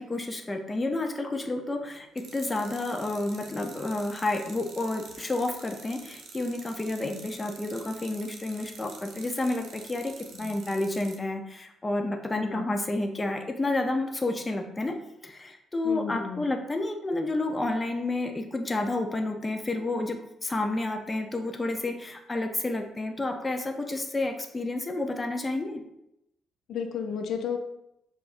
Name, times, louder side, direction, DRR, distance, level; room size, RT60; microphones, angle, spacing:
voice 1, 0.0-25.8, left 2 dB, 20° left, 4 dB, 0.6 m, -30 dB
sound 1, 2.2-11.2, right 4 dB, 70° right, 0.7 m, -47 dB
voice 2, 12.3-12.7 15.8-16.5 26.7-27.6, left 7 dB, 70° left, 5 dB, 0.6 m, -33 dB
6.7 x 2.5 x 2.5 m, 0.84 s
cardioid pair, 90°, 0 cm